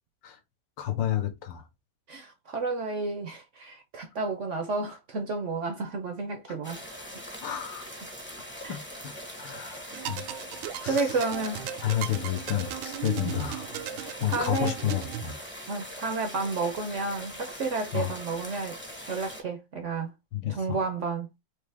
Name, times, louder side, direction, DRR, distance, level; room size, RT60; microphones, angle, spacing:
voice 1, 0.8-1.6 7.4-7.9 8.7-9.1 9.4-9.8 10.1-10.2 10.8-11.1 11.8-13.7 14.2-15.4 17.9-18.1 20.3-20.8, left 11 dB, 75° left, 1.6 m, -30 dB
voice 2, 2.1-6.9 8.6-8.8 10.0-10.1 10.9-11.7 13.2-13.3 14.0-14.7 15.7-18.8 19.1-20.1 20.5-21.4, right 3 dB, 60° right, 0.7 m, -31 dB
sound 1, 6.6-19.4, equal, 10° left, 0.6 m, -42 dB
sound 2, 9.9-15.3, right 11 dB, 85° right, 1.4 m, -37 dB
4.9 x 2.8 x 3.3 m
omnidirectional pair, 2.1 m